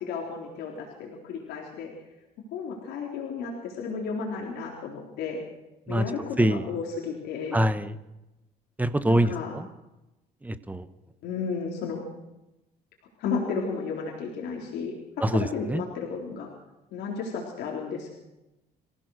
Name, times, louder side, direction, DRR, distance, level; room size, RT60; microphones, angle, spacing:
voice 1, 0.0-1.9 2.5-5.4 5.9-7.6 9.1-9.5 11.2-12.0 13.2-16.5 16.9-18.1, left 5 dB, 80° left, -1 dB, 3.9 m, -33 dB
voice 2, 7.5-7.9 8.8-9.7 10.4-10.9 15.2-15.8, right 1 dB, 10° right, 12 dB, 1.2 m, -24 dB
25.5 x 16.0 x 6.4 m, 0.98 s
cardioid pair, 110°, 17 cm